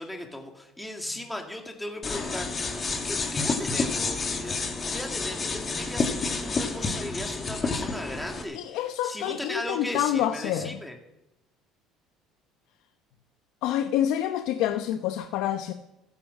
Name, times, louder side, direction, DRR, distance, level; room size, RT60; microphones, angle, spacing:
voice 1, 0.0-2.8 3.0-11.0, left 1 dB, 5° left, 2 dB, 2.2 m, -37 dB
sound 1, 2.0-8.4, left 4 dB, 30° left, 2.2 m, -29 dB
voice 2, 8.5-10.8 13.6-15.7, left 11 dB, 75° left, 8 dB, 0.9 m, -27 dB
15.0 x 11.0 x 7.5 m, 0.91 s
cardioid pair, 110°, 0 cm